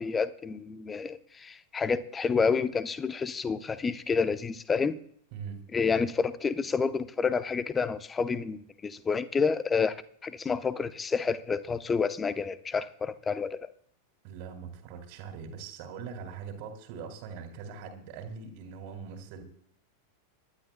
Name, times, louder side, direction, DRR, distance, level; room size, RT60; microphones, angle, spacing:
voice 1, 0.0-5.0 5.7-9.9 10.2-13.7, left 5 dB, 15° left, 14 dB, 0.8 m, -29 dB
voice 2, 5.3-5.6 14.2-19.4, right 6 dB, 45° right, 3 dB, 2.3 m, -42 dB
26.0 x 12.0 x 2.2 m, 0.63 s
figure-of-eight pair, 90°, 0 cm